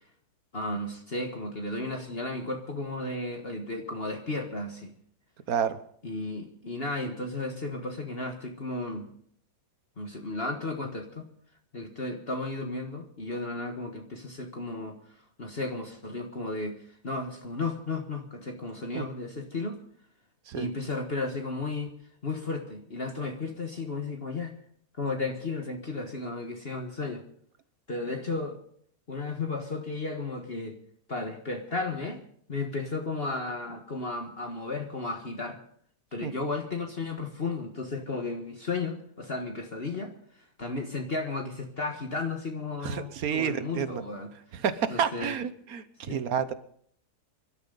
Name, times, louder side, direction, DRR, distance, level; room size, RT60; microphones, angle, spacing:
voice 1, 0.5-4.9 6.0-9.1 10.0-11.3 11.7-15.0 15.4-19.8 20.5-21.9 22.2-24.6 25.0-27.2 27.9-28.6 29.1-30.8 31.1-32.2 32.5-35.6 36.1-40.1 40.6-44.6 44.9-45.3 46.1-46.2, left 3 dB, 40° left, 3 dB, 1.7 m, -34 dB
voice 2, 5.5-5.8 18.9-19.1 20.5-20.7 36.2-36.3 42.8-44.0 44.5-46.5, right 7 dB, 65° right, 13 dB, 1.4 m, -30 dB
25.5 x 12.5 x 4.0 m, 0.63 s
omnidirectional pair, 1.7 m